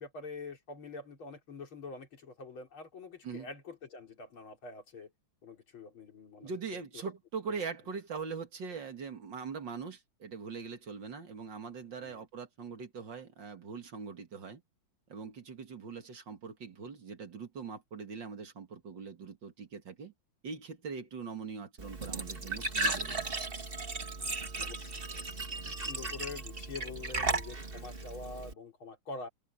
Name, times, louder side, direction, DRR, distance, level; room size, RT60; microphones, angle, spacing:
voice 1, 0.0-5.1 5.4-6.5 6.9-7.1 7.5-7.7 11.9-12.3 24.6-29.3, left 4 dB, 75° left, 4.4 m, -46 dB
voice 2, 6.4-14.6 15.1-20.1 20.4-23.3, right 5 dB, 60° right, 2.7 m, -42 dB
Glass / Trickle dribble / Fill (with liquid), 21.8-28.5, right 3 dB, 25° right, 2.2 m, -36 dB
omnidirectional pair, 2.3 m